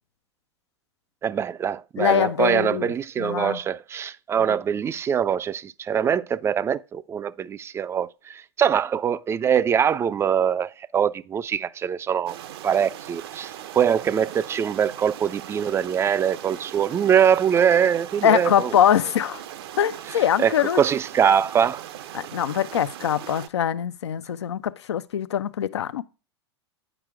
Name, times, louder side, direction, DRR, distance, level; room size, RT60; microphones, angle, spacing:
voice 1, 1.2-12.4 12.6-18.7 20.4-21.8, right 8 dB, 20° right, 0.4 m, -23 dB
voice 2, 2.0-2.9 3.2-3.6 18.2-19.4 19.8-20.8 22.1-26.0, left 9 dB, 80° left, 0.6 m, -23 dB
sound 1, 12.3-23.5, right 11 dB, 65° right, 0.7 m, -39 dB
8.9 x 5.1 x 4.7 m
hypercardioid pair, 105°, 14 cm